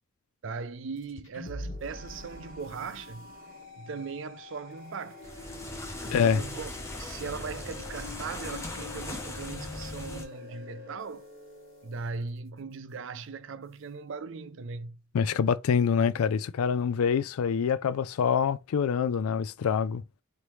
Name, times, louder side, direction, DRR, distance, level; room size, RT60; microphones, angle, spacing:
voice 1, 0.4-3.3 3.8-5.3 6.0-6.7 7.0-11.3 11.8-15.0, right 5 dB, 60° right, 0.4 m, -39 dB
sound 1, 1.0-11.5, left 2 dB, 65° left, 1.2 m, -47 dB
sound 2, 1.5-11.9, left 3 dB, 40° right, 1.0 m, -49 dB
sound 3, 5.2-10.2, left 1 dB, 15° left, 0.7 m, -39 dB
voice 2, 6.1-6.4 15.1-20.0, left 7 dB, 90° left, 0.3 m, -25 dB
4.1 x 3.3 x 3.1 m
head